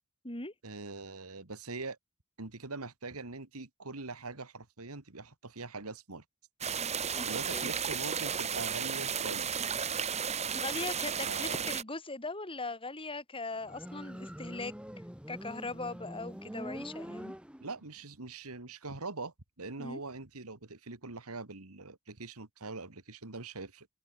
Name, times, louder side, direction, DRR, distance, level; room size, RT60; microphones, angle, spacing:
voice 1, 0.6-2.0 2.4-6.2 7.2-9.6 11.3-11.7 17.6-23.9, right 3 dB, 85° right, 2.3 m, -43 dB
sound 1, 6.6-11.8, right 7 dB, 30° right, 1.3 m, -34 dB
voice 2, 7.1-7.7 10.5-14.7 15.3-17.3 19.8-20.0, left 3 dB, 25° left, 6.6 m, -40 dB
Motorcycle, 13.6-18.0, equal, 5° right, 4.1 m, -44 dB
head